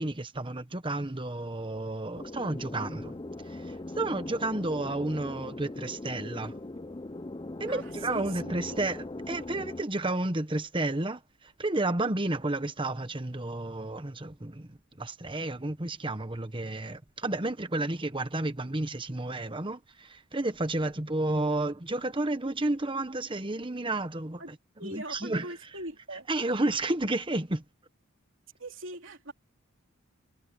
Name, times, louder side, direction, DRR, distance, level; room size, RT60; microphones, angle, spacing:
voice 1, 0.0-3.2 3.4-6.6 7.6-24.6 24.8-25.7 26.0-27.6, right 2 dB, 25° right, 1.2 m, -31 dB
sound 1, 2.2-9.8, left 2 dB, 20° left, 0.6 m, -40 dB
voice 2, 7.7-8.8 24.4-24.5 24.8-26.3 28.6-29.3, right 1 dB, 65° right, 3.6 m, -41 dB
head